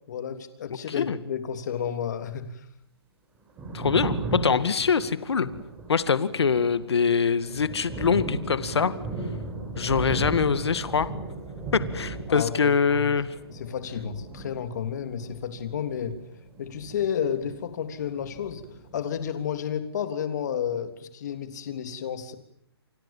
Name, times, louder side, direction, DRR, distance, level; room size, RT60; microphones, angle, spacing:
voice 1, 0.1-2.6 12.3-13.1 13.5-16.2 16.6-18.6 18.9-22.4, left 8 dB, 40° left, 8 dB, 3.4 m, -31 dB
Thunder, 3.3-17.8 18.0-19.3, right 3 dB, 10° right, 7.2 m, -36 dB
voice 2, 3.7-5.5 5.9-8.9 9.8-11.1 11.7-13.3, left 6 dB, 75° left, 13 dB, 2.1 m, -24 dB
29.5 x 26.5 x 7.5 m, 0.67 s
hypercardioid pair, 165°, 14 cm